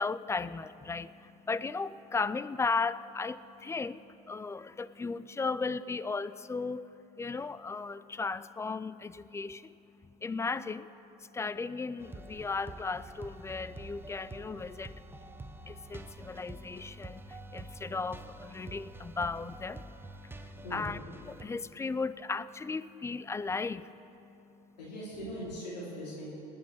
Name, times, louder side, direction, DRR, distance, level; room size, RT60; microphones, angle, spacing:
voice 1, 0.0-6.9 7.2-9.8 10.2-10.9 11.2-15.0 15.7-24.7, left 4 dB, 15° left, 17 dB, 0.3 m, -36 dB
sound 1, 12.0-21.4, right 2 dB, 10° right, 0.8 m, -47 dB
voice 2, 24.8-26.3, equal, 90° left, -8 dB, 2.9 m, -40 dB
20.0 x 7.2 x 6.4 m, 3.0 s
hypercardioid pair, 85°, 21 cm